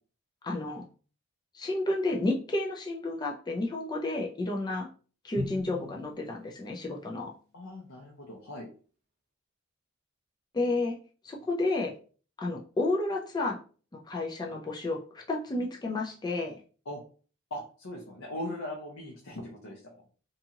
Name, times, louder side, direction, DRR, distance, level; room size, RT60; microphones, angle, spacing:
voice 1, 0.4-0.8 1.5-4.9 5.2-7.3 10.5-11.0 11.2-11.9 12.4-13.6 14.1-16.6, left 2 dB, 20° left, -1 dB, 0.4 m, -31 dB
Drum, 5.4-7.1, left 3 dB, 50° right, 0.8 m, -41 dB
voice 2, 7.5-8.7 16.9-17.0 17.5-20.1, left 1 dB, 65° left, -1 dB, 0.6 m, -40 dB
2.7 x 2.4 x 2.8 m, 0.40 s
head